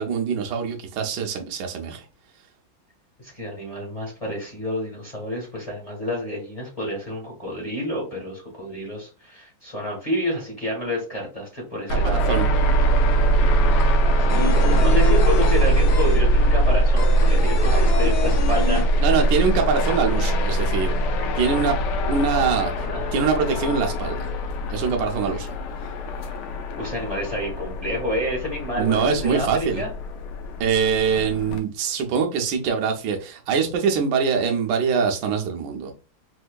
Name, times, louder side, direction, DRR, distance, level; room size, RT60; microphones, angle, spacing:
voice 1, 0.0-2.1 11.9-12.5 17.7-17.8 19.0-20.9 21.4-21.8 22.1-22.9 23.1-24.3 24.7-25.5 28.7-29.8 30.6-35.9, right 6 dB, 70° right, 1.2 m, -23 dB
voice 2, 3.2-12.4 14.2-18.8 22.7-23.1 26.7-29.9, left 1 dB, 25° left, 0.8 m, -29 dB
sound 1, 11.9-31.6, right 1 dB, 90° left, 1.5 m, -21 dB
sound 2, 12.6-12.7 12.9-19.5 19.8-19.9 20.2-21.0, left 6 dB, 65° left, 1.1 m, -29 dB
4.4 x 2.7 x 2.2 m
omnidirectional pair, 2.3 m